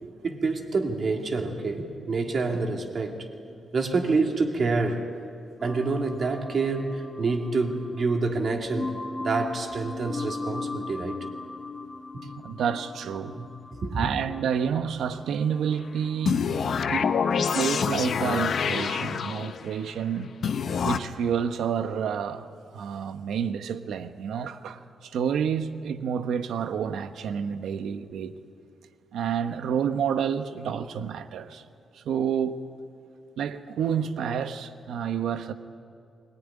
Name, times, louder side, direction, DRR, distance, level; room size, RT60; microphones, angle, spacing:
voice 1, 0.0-3.3 3.7-5.0 5.6-11.2 12.1-12.2 13.4-14.0, right 3 dB, 40° right, 2.3 m, -27 dB
sound 1, 5.6-17.8, left 3 dB, 15° left, 1.1 m, -39 dB
voice 2, 12.4-13.4 13.9-16.5 16.9-17.1 17.4-20.3 20.8-28.3 29.1-31.6 31.9-32.6 33.4-35.5, right 7 dB, 90° right, 1.0 m, -29 dB
sound 2, 16.2-19.7 20.4-21.0, left 6 dB, 50° left, 0.9 m, -26 dB
23.0 x 18.5 x 9.9 m
wide cardioid pair, 155°, 0 cm